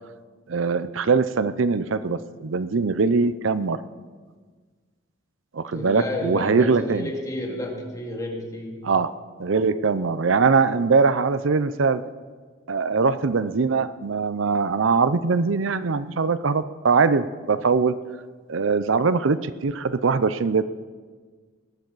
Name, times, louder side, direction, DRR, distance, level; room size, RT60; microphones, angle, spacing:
voice 1, 0.5-3.8 5.5-7.1 8.8-9.1 9.4-12.0 12.7-17.9 18.5-20.7, right 4 dB, 85° right, 14 dB, 0.6 m, -22 dB
voice 2, 5.7-8.8, left 1 dB, 20° left, -1 dB, 2.4 m, -31 dB
19.5 x 13.0 x 4.1 m, 1.5 s
head